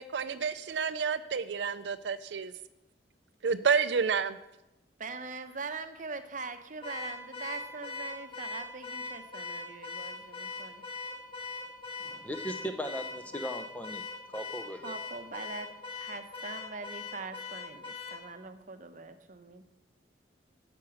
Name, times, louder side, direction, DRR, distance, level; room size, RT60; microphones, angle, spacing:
voice 1, 0.0-2.5 3.4-4.4, right 6 dB, 70° right, 13 dB, 0.4 m, -29 dB
voice 2, 5.0-10.8 14.8-15.7 15.9-19.6, right 4 dB, 45° right, 8 dB, 0.8 m, -42 dB
Car / Alarm, 6.8-18.2, left 3 dB, 30° left, 1.9 m, -41 dB
voice 3, 12.0-14.0 14.3-14.9, equal, 10° left, 7 dB, 0.6 m, -38 dB
9.6 x 6.1 x 7.2 m, 0.92 s
head